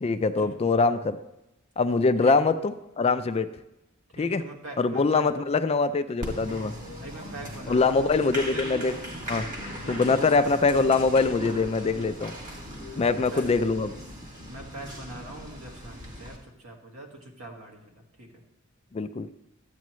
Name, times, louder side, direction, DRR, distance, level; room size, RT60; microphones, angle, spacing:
voice 1, 0.0-1.2 1.8-3.5 4.2-4.4 4.8-6.7 7.7-9.0 9.3-9.5 9.9-12.3 13.0-14.0 18.9-19.3, left 4 dB, 30° left, 11 dB, 0.4 m, -23 dB
voice 2, 4.2-5.5 6.9-8.7 9.8-10.3 12.1-12.2 12.9-13.5 14.5-18.4, right 1 dB, 75° right, 1 dB, 1.7 m, -42 dB
Applause, 6.2-16.4, equal, 40° right, 2.1 m, -38 dB
12.5 x 8.4 x 3.1 m, 0.89 s
head